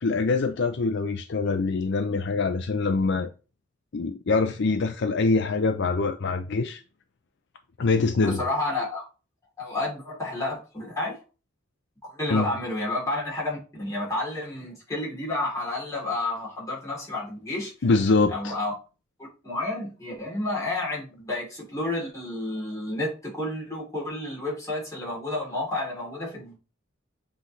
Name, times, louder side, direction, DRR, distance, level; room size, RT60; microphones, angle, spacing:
voice 1, 0.0-3.3 3.9-6.8 7.8-8.4 12.3-12.5 17.8-18.6, left 3 dB, 60° left, 0.5 m, -24 dB
voice 2, 8.2-9.0 9.6-11.2 12.0-17.7 18.3-18.7 19.4-26.6, left 2 dB, 15° left, 3.0 m, -30 dB
7.6 x 4.0 x 3.1 m
head